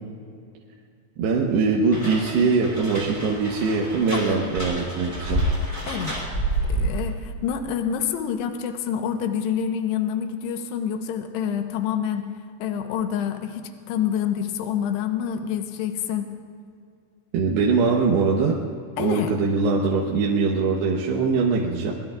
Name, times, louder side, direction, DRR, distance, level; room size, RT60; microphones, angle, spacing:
voice 1, 1.2-5.4 17.3-18.6 19.0-21.9, right 4 dB, 75° right, -2 dB, 3.0 m, -22 dB
sound 1, 1.9-7.1, right 1 dB, 5° right, 1.8 m, -28 dB
voice 2, 4.1-4.5 5.9-6.2 6.7-12.3 12.6-16.4 19.0-19.4, left 8 dB, 75° left, 6 dB, 2.9 m, -27 dB
24.0 x 20.5 x 2.5 m, 2.3 s
omnidirectional pair, 5.3 m